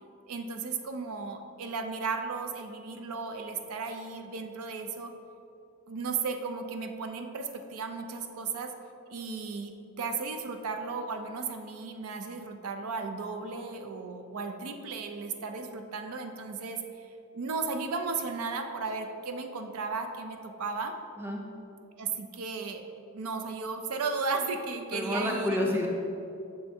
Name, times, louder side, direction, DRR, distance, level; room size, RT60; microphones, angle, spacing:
voice 1, 0.3-5.1 5.9-8.7 9.1-17.1 17.3-20.9 22.0-22.8 23.1-25.7, right 4 dB, 80° right, 6 dB, 0.4 m, -35 dB
voice 2, 24.9-25.9, left 1 dB, 10° right, 0 dB, 0.5 m, -29 dB
6.4 x 3.4 x 4.2 m, 2.6 s
head